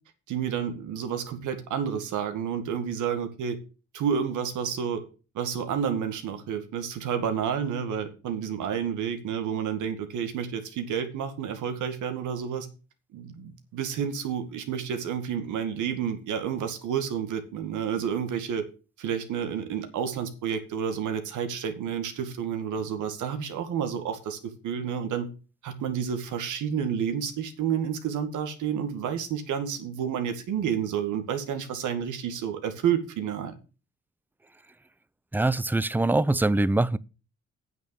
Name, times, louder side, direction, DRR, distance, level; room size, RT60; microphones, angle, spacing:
voice 1, 0.3-3.6 3.9-5.0 5.3-12.7 13.1-18.7 19.0-25.3 25.6-33.5, right 8 dB, 80° right, 2.0 m, -30 dB
voice 2, 35.3-37.0, right 2 dB, 5° right, 0.5 m, -23 dB
9.1 x 6.4 x 7.1 m
cardioid pair, 90°, 30 cm